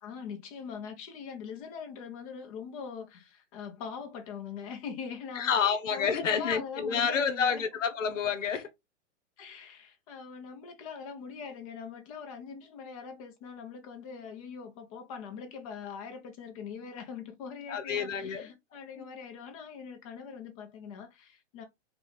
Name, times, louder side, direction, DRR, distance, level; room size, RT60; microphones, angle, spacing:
voice 1, 0.0-7.6 9.4-21.6, left 6 dB, 30° left, 0.8 m, -42 dB
voice 2, 5.3-8.7 17.7-18.5 19.0-19.1, left 6 dB, 80° left, 1.1 m, -29 dB
4.8 x 2.4 x 3.4 m
hypercardioid pair, 160°, 37 cm